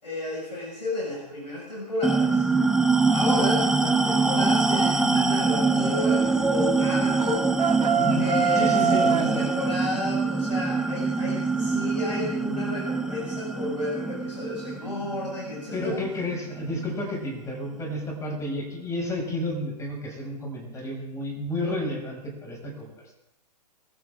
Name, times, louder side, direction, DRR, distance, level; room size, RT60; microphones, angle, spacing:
voice 1, 0.0-2.5 3.1-7.5 8.2-16.0, left 2 dB, 90° left, -4 dB, 5.9 m, -32 dB
sound 1, 2.0-16.8, right 4 dB, 5° right, 0.8 m, -24 dB
sound 2, 7.2-9.3, right 7 dB, 90° right, 0.9 m, -24 dB
voice 2, 7.8-8.2 8.5-9.3 15.7-22.9, left 1 dB, 15° left, 0 dB, 6.3 m, -31 dB
24.5 x 14.0 x 3.7 m, 0.82 s
hypercardioid pair, 120°, 21 cm